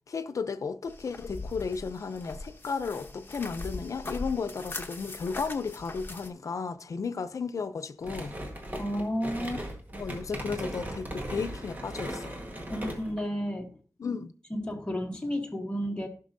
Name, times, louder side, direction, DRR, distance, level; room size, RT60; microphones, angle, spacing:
voice 1, 0.1-8.3 10.0-12.4 14.0-14.3, left 5 dB, 70° left, 0.6 m, -34 dB
sound 1, 0.9-6.3, left 2 dB, 40° left, 1.0 m, -40 dB
sound 2, 8.0-13.2, right 1 dB, 30° right, 1.7 m, -38 dB
voice 2, 8.8-9.6 9.9-10.0 12.7-13.7 14.5-16.1, equal, 15° left, 1.3 m, -32 dB
15.5 x 6.0 x 2.7 m
wide cardioid pair, 105°, 6 cm